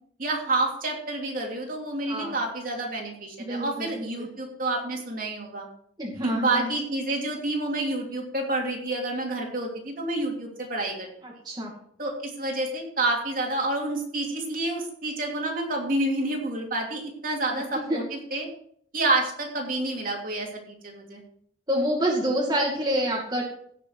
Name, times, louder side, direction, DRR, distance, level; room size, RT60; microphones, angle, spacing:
voice 1, 0.2-5.7 6.2-11.1 12.0-18.0 18.3-18.5 18.9-21.2, right 2 dB, 50° right, 0 dB, 2.9 m, -29 dB
voice 2, 3.4-4.3 6.0-6.7 11.2-11.7 17.5-17.6 17.9-18.0 21.7-23.4, equal, 20° right, -3 dB, 2.3 m, -27 dB
17.0 x 6.7 x 4.7 m, 0.63 s
head